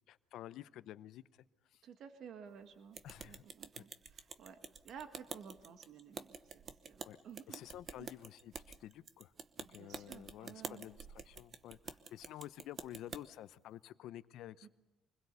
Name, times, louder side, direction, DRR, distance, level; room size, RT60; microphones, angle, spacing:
voice 1, 0.1-1.2 1.7-1.8 3.0-3.4 3.7-3.8 7.0-7.2 7.5-9.3 9.7-14.7, left 13 dB, 65° left, 13 dB, 0.8 m, -51 dB
voice 2, 1.8-3.0 3.2-4.6 4.8-7.6 7.9-8.1 9.6-10.8 14.6-14.7, right 7 dB, 50° right, 8 dB, 1.6 m, -54 dB
sound 1, 2.9-13.2, right 5 dB, 30° right, 1.0 m, -49 dB
25.0 x 21.0 x 8.1 m, 0.99 s
cardioid pair, 170°, 0 cm